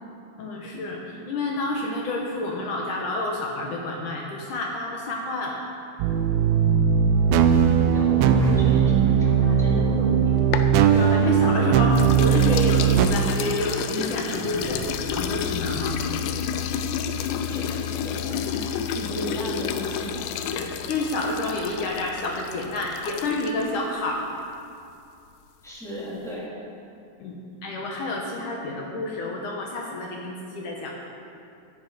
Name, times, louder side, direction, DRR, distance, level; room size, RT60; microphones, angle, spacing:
voice 1, 0.4-5.6 10.8-14.8 15.1-16.0 20.5-24.2 27.2-27.4 27.6-30.9, left 2 dB, 70° left, -1 dB, 2.1 m, -29 dB
sound 1, 6.0-13.1, right 7 dB, 85° right, 2.2 m, -19 dB
voice 2, 7.0-10.4 17.5-20.3 25.6-26.5, left 1 dB, ahead, -7 dB, 2.3 m, -35 dB
sound 2, 9.9-11.5 12.0-23.7, left 8 dB, 85° left, 2.8 m, -31 dB
sound 3, 14.3-23.3, left 5 dB, 65° right, 4.5 m, -37 dB
14.0 x 9.8 x 5.0 m, 2.5 s
omnidirectional pair, 4.9 m